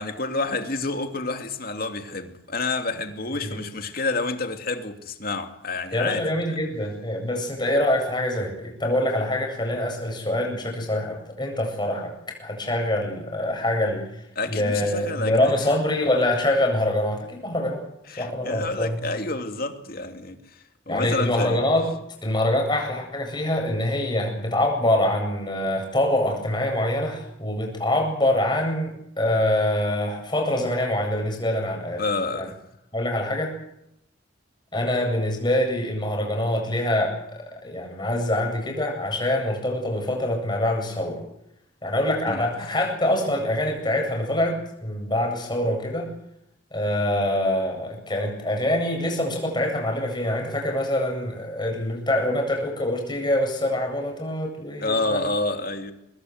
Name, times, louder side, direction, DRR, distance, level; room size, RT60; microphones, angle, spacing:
voice 1, 0.0-6.3 14.3-15.6 18.1-21.6 32.0-32.5 42.3-42.4 54.8-55.9, left 3 dB, 50° left, 2.8 m, -29 dB
voice 2, 5.9-14.0 14.5-17.8 18.2-19.0 20.9-21.8 22.2-32.0 32.3-32.5 32.9-33.5 34.7-41.2 41.8-46.1 46.7-55.3, left 1 dB, 25° left, 8.0 m, -25 dB
24.5 x 21.0 x 8.0 m
head